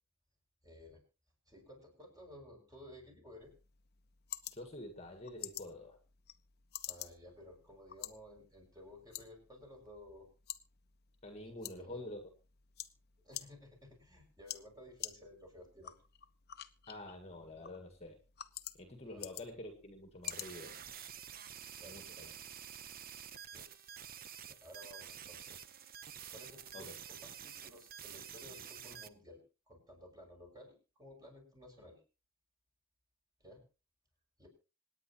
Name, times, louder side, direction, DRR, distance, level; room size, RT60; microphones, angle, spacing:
voice 1, 0.6-1.0 1.5-3.5 6.8-10.3 11.6-12.0 13.2-15.9 19.1-19.2 21.8-22.3 23.5-23.7 24.0-25.6 26.3-29.4 29.7-32.0 33.4-33.6 34.4-34.5, left 1 dB, 20° right, 1 dB, 6.7 m, -55 dB
sound 1, 3.4-21.4, left 12 dB, 50° left, 0.9 m, -50 dB
voice 2, 4.5-6.0 11.2-12.3 16.9-18.2 18.7-20.8 21.8-22.3 26.7-26.9, left 1 dB, 30° left, 5 dB, 1.8 m, -47 dB
sound 2, 20.2-29.1, right 8 dB, 45° right, 0.8 m, -49 dB
26.5 x 9.6 x 3.0 m, 0.33 s
head